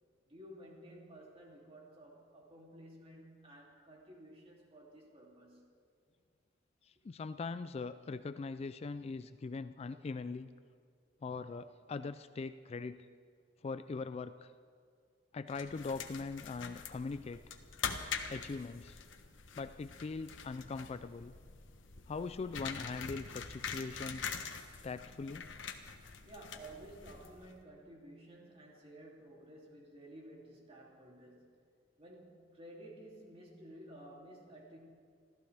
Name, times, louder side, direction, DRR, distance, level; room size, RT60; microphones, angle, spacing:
voice 1, 0.3-5.7 26.0-31.6 32.0-34.8, right 1 dB, 30° right, -2 dB, 2.9 m, -54 dB
voice 2, 6.8-10.5 11.2-13.1 13.6-14.5 15.3-17.4 18.3-19.0 19.5-21.3 22.1-24.3 24.8-25.5, left 4 dB, 35° left, 12 dB, 0.3 m, -41 dB
sound 1, 15.5-27.6, left 6 dB, 80° left, 1.1 m, -44 dB
26.5 x 14.5 x 3.4 m, 2.2 s
head